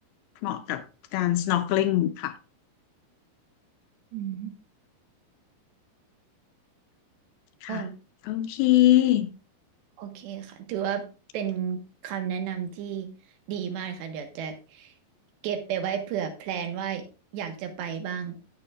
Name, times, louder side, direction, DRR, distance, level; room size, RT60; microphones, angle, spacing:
voice 1, 0.4-0.8 1.1-2.3 7.6-7.8 8.3-9.3, left 14 dB, 80° left, 2.4 m, -23 dB
voice 2, 4.1-4.5 7.7-8.0 10.0-11.1 11.3-13.1 13.5-14.9 15.4-17.1 17.3-18.4, right 8 dB, 80° right, 3.5 m, -32 dB
16.5 x 6.8 x 2.4 m
omnidirectional pair, 4.9 m